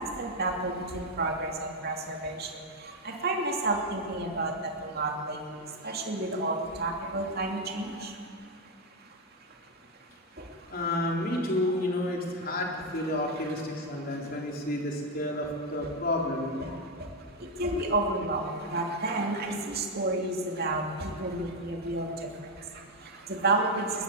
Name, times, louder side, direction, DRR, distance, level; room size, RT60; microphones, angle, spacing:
voice 1, 0.0-10.8 13.4-13.5 16.6-24.0, right 2 dB, 50° right, 2 dB, 2.8 m, -32 dB
voice 2, 10.7-16.7, left 1 dB, 45° left, 0 dB, 3.7 m, -30 dB
20.5 x 20.0 x 7.7 m, 2.2 s
head